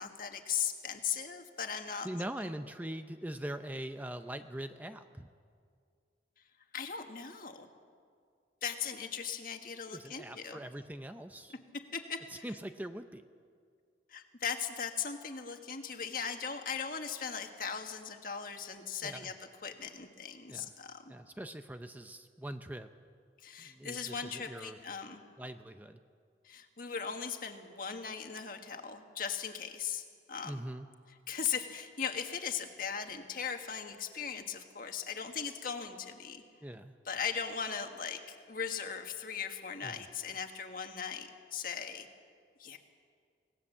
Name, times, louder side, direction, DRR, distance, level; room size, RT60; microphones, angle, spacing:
voice 1, 0.0-2.1 2.4-2.5 6.7-7.7 8.6-10.6 11.7-12.5 14.1-19.3 19.6-21.1 23.4-25.2 26.4-30.6 31.3-36.4 37.0-42.1 42.6-42.8, left 7 dB, 50° left, 5 dB, 1.7 m, -38 dB
voice 2, 2.0-5.3 9.9-11.6 12.3-13.2 19.0-19.3 20.5-20.7 21.1-22.9 23.6-24.8 25.4-26.0 30.4-30.9 36.6-37.0 39.8-40.0, right 1 dB, 10° right, 8 dB, 0.6 m, -42 dB
25.5 x 18.5 x 7.3 m, 2.1 s
head